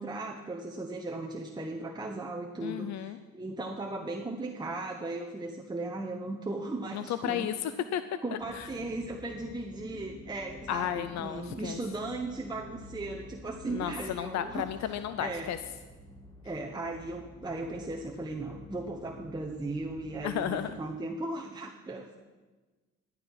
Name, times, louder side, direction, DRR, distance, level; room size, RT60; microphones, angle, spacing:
voice 1, 0.0-7.6 8.2-14.7 15.2-15.5 16.4-22.2, right 2 dB, 15° right, 0 dB, 1.0 m, -37 dB
voice 2, 2.6-3.2 6.9-8.0 8.3-8.7 10.7-11.8 13.7-15.6 20.2-20.8, left 10 dB, 65° left, 12 dB, 0.6 m, -33 dB
sound 1, 8.4-20.7, left 2 dB, 15° left, 1.9 m, -50 dB
11.0 x 11.0 x 4.8 m, 1.3 s
cardioid pair, 90°, 30 cm